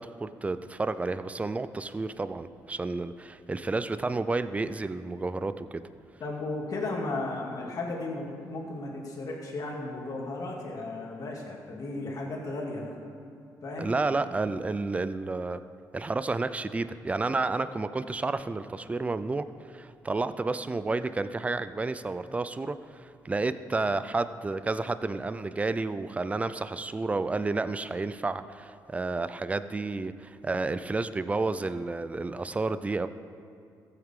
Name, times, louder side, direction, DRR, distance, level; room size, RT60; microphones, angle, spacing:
voice 1, 0.0-5.8 13.8-15.6 15.9-33.1, right 3 dB, 20° right, 13 dB, 0.4 m, -31 dB
voice 2, 6.2-13.0 13.6-14.0, left 2 dB, 55° left, -1 dB, 2.4 m, -35 dB
15.0 x 8.1 x 3.7 m, 2.5 s
cardioid pair, 75°, 7 cm